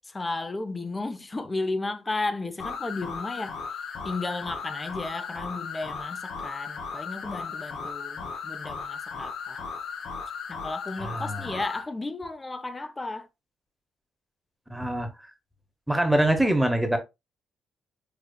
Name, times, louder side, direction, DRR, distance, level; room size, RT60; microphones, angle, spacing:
voice 1, 0.0-3.6 4.0-9.6 10.5-13.3, left 2 dB, 20° left, 0.5 m, -34 dB
sound 1, 2.6-11.9, left 5 dB, 65° left, 0.7 m, -36 dB
voice 2, 11.0-11.6 14.7-15.1 15.9-17.0, right 1 dB, 5° right, 0.8 m, -24 dB
4.9 x 2.3 x 2.2 m
cardioid pair, 90°, 0 cm